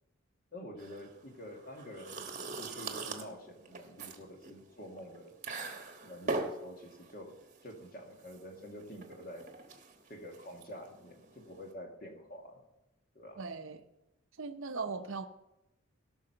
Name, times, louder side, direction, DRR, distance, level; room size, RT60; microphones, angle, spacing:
voice 1, 0.5-5.3 6.0-7.3 7.6-9.5 10.1-12.6 13.2-13.4, equal, 40° left, 2 dB, 1.9 m, -48 dB
sound 1, 0.8-11.7, right 3 dB, 35° right, 1.2 m, -42 dB
voice 2, 13.4-13.8 14.4-15.3, right 4 dB, 65° right, 6 dB, 0.7 m, -38 dB
17.0 x 6.2 x 5.6 m, 0.90 s
head